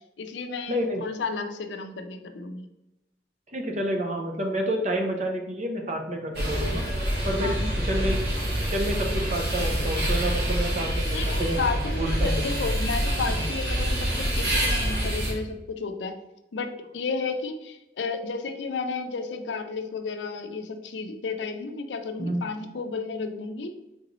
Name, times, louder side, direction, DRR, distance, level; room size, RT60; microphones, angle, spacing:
voice 1, 0.2-2.7 7.4-7.8 11.1-16.2 16.5-23.7, left 4 dB, 80° left, 7 dB, 0.5 m, -32 dB
voice 2, 0.7-1.0 3.5-6.8 7.2-8.2 8.7-11.6 12.0-12.5 13.3-13.4 22.2-22.4, right 1 dB, 40° right, 2 dB, 0.7 m, -29 dB
sound 1, 6.3-15.3, equal, 70° right, 1.4 m, -26 dB
3.8 x 3.8 x 3.0 m, 0.92 s
head